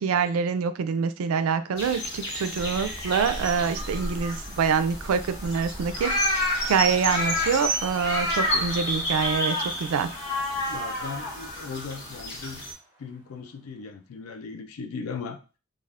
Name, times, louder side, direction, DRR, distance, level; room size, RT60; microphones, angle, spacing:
voice 1, 0.0-6.4 6.6-10.1, right 6 dB, 80° right, 11 dB, 0.4 m, -26 dB
sound 1, 1.8-12.7, left 1 dB, 55° left, 1.0 m, -30 dB
sound 2, 2.0-13.8, right 2 dB, 20° right, 1.0 m, -49 dB
sound 3, 2.5-9.4, equal, 30° left, 1.2 m, -40 dB
voice 2, 10.7-12.6 13.0-15.4, left 5 dB, 80° left, 7 dB, 0.4 m, -37 dB
3.3 x 2.4 x 2.4 m, 0.32 s
head